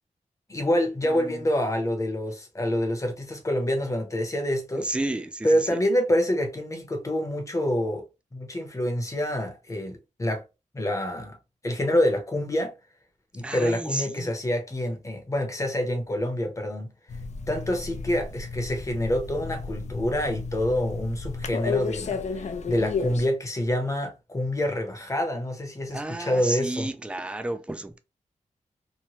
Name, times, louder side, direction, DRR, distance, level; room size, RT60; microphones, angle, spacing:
voice 1, 0.5-4.9 5.4-8.0 8.3-10.4 10.7-11.4 11.6-12.7 13.3-16.9 17.5-26.9, left 1 dB, 25° left, 0.8 m, -27 dB
voice 2, 1.0-1.4 4.8-5.8 13.4-14.3 25.9-28.0, right 1 dB, 10° right, 0.3 m, -32 dB
sound 1, 17.1-23.3, left 5 dB, 60° left, 0.4 m, -33 dB
3.0 x 2.2 x 2.8 m
wide cardioid pair, 135°, 13 cm